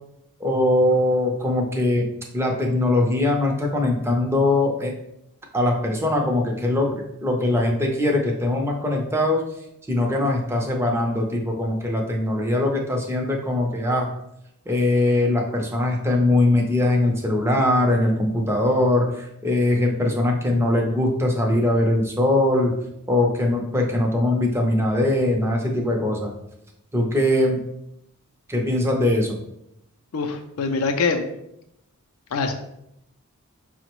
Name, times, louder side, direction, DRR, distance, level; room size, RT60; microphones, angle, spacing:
voice 1, 0.4-4.9 5.5-9.4 9.9-14.1 14.7-22.7 23.1-26.3 26.9-27.6 28.5-29.4, left 1 dB, 10° right, 1 dB, 0.5 m, -21 dB
voice 2, 30.1-31.4 32.3-32.5, left 4 dB, 70° left, 5 dB, 0.4 m, -24 dB
5.7 x 2.1 x 3.0 m, 0.80 s
head